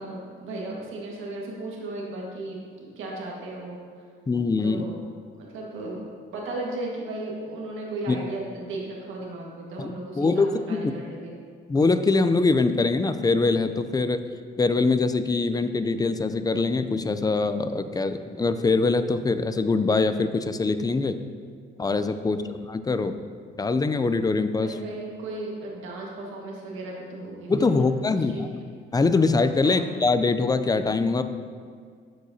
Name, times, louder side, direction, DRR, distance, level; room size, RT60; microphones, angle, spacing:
voice 1, 0.0-3.8 4.6-5.0 5.4-6.0 6.3-11.3 22.1-22.5 24.6-28.4 29.6-29.8, right 2 dB, 85° right, -2 dB, 1.6 m, -35 dB
voice 2, 4.3-4.8 8.1-8.2 9.8-10.9 11.7-14.2 14.6-21.2 21.8-22.4 22.7-23.2 23.6-24.7 27.5-28.5 28.9-31.2, left 3 dB, 20° left, 10 dB, 0.4 m, -23 dB
13.5 x 4.8 x 2.7 m, 2.1 s
cardioid pair, 90°, 20 cm